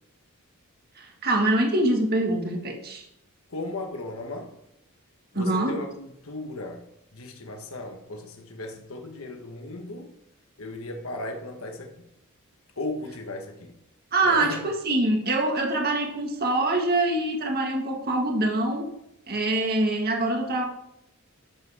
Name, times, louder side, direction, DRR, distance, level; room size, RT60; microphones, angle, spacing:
voice 1, 1.0-3.0 5.4-5.7 14.1-18.9 19.3-20.6, right 2 dB, 45° right, 1.8 m, -24 dB
voice 2, 3.5-4.6 5.3-10.2 10.6-12.0 12.8-13.7 14.2-14.6, left 2 dB, 65° left, 1.4 m, -36 dB
12.0 x 7.8 x 3.6 m
head